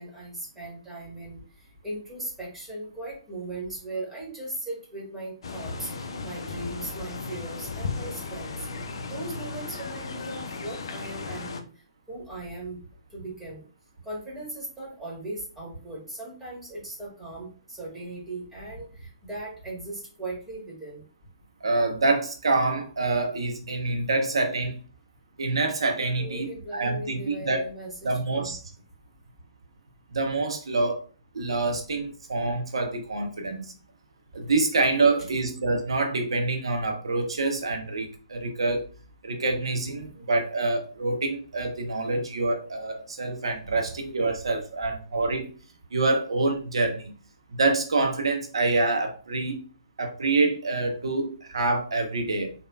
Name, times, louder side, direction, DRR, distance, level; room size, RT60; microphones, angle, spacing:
voice 1, 0.0-1.4 1.8-5.9 6.2-8.7 9.1-11.7 12.1-12.8 13.1-13.6 14.0-21.0 26.2-28.5 35.2-35.3 40.1-40.2 43.7-43.8, right 2 dB, 5° right, -5 dB, 1.3 m, -38 dB
sound 1, 5.4-11.6, left 4 dB, 65° left, 0.4 m, -35 dB
voice 2, 21.6-24.7 25.4-27.6 28.0-28.6 30.1-31.0 31.3-33.7 34.3-38.8 39.2-45.5 45.9-47.1 47.5-49.6 50.0-52.5, right 3 dB, 75° right, 3 dB, 0.5 m, -26 dB
3.2 x 2.1 x 2.3 m, 0.38 s
figure-of-eight pair, 130°, 3 cm